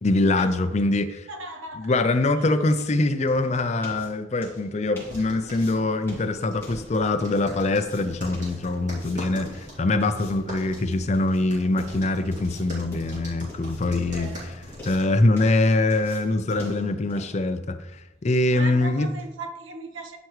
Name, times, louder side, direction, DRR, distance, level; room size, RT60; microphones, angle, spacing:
voice 1, 0.0-1.3 1.8-14.3 14.8-19.1, left 2 dB, 35° left, 10 dB, 0.4 m, -23 dB
voice 2, 1.3-1.9 2.4-2.6 14.1-14.4 18.5-20.2, right 3 dB, 80° right, 4 dB, 1.1 m, -37 dB
sound 1, 1.5-19.3, left 1 dB, 10° left, 2.8 m, -47 dB
sound 2, 5.0-15.2, equal, 40° right, 2.9 m, -41 dB
12.0 x 4.8 x 3.2 m, 1.0 s
head